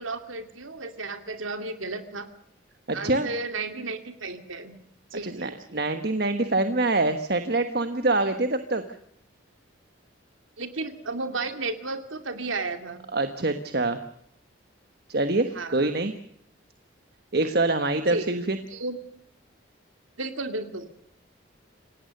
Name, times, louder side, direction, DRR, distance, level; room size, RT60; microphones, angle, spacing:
voice 1, 0.0-2.3 2.9-4.7 5.1-5.8 10.6-13.0 15.5-15.9 18.1-18.3 18.7-19.0 20.2-20.9, right 3 dB, 85° right, 7 dB, 2.6 m, -33 dB
voice 2, 2.9-3.3 5.2-8.8 13.1-14.0 15.1-16.1 17.3-18.6, right 2 dB, 50° right, 8 dB, 1.3 m, -25 dB
27.0 x 18.5 x 6.7 m, 0.68 s
head